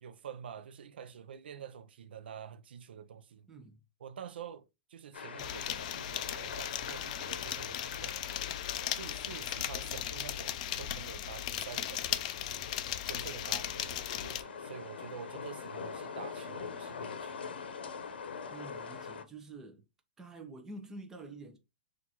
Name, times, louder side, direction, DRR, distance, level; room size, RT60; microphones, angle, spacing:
voice 1, 0.0-3.5 4.0-8.3 8.9-12.7 13.1-17.4, right 8 dB, 85° right, 0.5 m, -47 dB
sound 1, 5.1-19.2, left 6 dB, 85° left, 0.7 m, -44 dB
sound 2, 5.4-14.4, left 12 dB, 45° left, 0.4 m, -37 dB
voice 2, 18.5-19.8 20.2-21.6, right 2 dB, 10° right, 0.6 m, -47 dB
6.0 x 2.5 x 2.8 m
hypercardioid pair, 160°, 5 cm